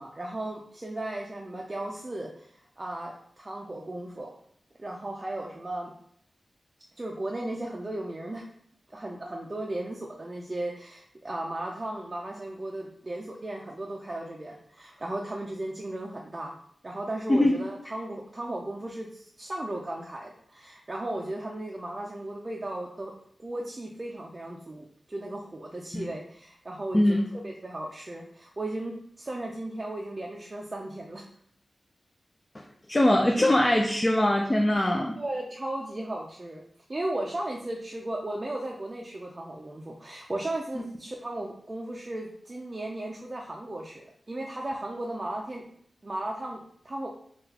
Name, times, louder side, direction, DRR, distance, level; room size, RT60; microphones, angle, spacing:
voice 1, 0.0-4.3 4.8-5.9 7.0-8.5 8.9-16.6 16.8-23.1 23.4-31.2 35.2-36.6 36.9-45.6 46.0-47.1, right 1 dB, 35° right, -2 dB, 0.4 m, -36 dB
voice 2, 32.5-35.2 40.8-40.9, left 1 dB, 25° left, 1 dB, 0.4 m, -22 dB
3.7 x 2.4 x 2.8 m, 0.64 s
wide cardioid pair, 70°, 0 cm